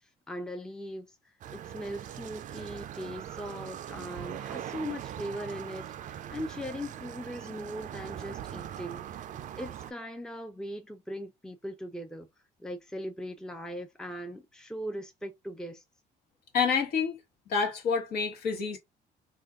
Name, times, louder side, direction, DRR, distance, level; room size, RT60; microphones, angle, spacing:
voice 1, 0.3-1.1 1.5-9.3 9.6-12.3 12.6-15.8, equal, 5° left, 0.5 m, -39 dB
sound 1, 1.4-9.9, right 10 dB, 50° right, 0.4 m, -41 dB
voice 2, 16.5-17.2 17.5-18.8, left 6 dB, 70° left, 1.2 m, -28 dB
2.5 x 2.3 x 3.5 m
cardioid pair, 110°, 17 cm